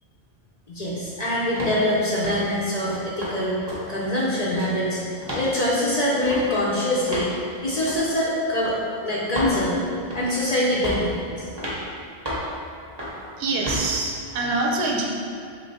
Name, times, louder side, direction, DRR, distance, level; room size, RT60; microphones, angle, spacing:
voice 1, 0.7-5.0 5.3-8.8 9.0-9.8 10.1-11.5, left 1 dB, 45° left, -6 dB, 0.6 m, -24 dB
sound 1, 1.6-1.8 2.2-2.5 2.9-3.4 3.7-3.8 4.1-4.8 5.2-5.5 6.2-6.4 7.1-7.3 7.9-8.1 8.6-8.8 9.3-9.6 10.1-10.4 10.8-11.1 11.6-11.8 12.2-12.5 13.0-13.2 13.6-13.8, equal, 30° right, 0.6 m, -31 dB
voice 2, 13.4-15.1, right 2 dB, 80° right, -1 dB, 0.9 m, -25 dB
3.2 x 2.8 x 4.0 m, 2.4 s
omnidirectional pair, 1.1 m